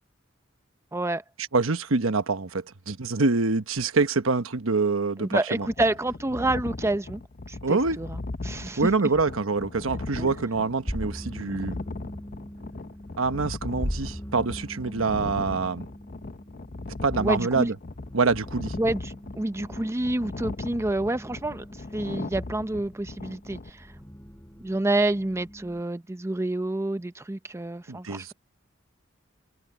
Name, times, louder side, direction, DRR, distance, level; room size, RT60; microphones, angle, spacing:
voice 1, 0.9-1.2 5.2-7.2 7.5-8.2 8.4-8.9 10.2-10.3 17.1-17.7 18.8-21.6 21.9-23.9 24.6-28.3, right 2 dB, 15° right, 0.5 m, -28 dB
voice 2, 1.5-5.7 7.6-8.0 8.8-11.8 13.2-15.9 17.0-17.8 18.1-18.8 27.9-28.3, right 4 dB, 90° right, 1.1 m, -25 dB
sound 1, 5.6-23.7, left 2 dB, 45° left, 0.7 m, -38 dB
sound 2, 10.7-25.8, equal, 10° left, 3.9 m, -41 dB
head